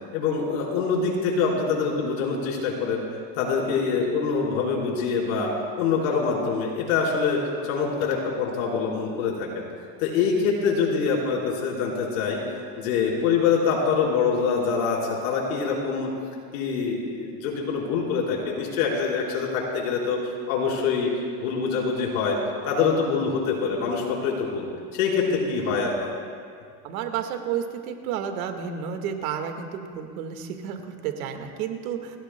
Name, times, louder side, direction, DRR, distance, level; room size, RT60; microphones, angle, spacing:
voice 1, 0.1-3.0 3.4-5.5 5.8-7.4 7.7-9.5 10.0-16.1 16.5-20.2 20.5-21.1 21.4-22.4 22.6-25.9, left 5 dB, 75° left, -3 dB, 4.4 m, -25 dB
voice 2, 26.8-32.2, right 8 dB, 85° right, 5 dB, 1.8 m, -31 dB
30.0 x 16.5 x 2.2 m, 2.2 s
cardioid pair, 175°, 41 cm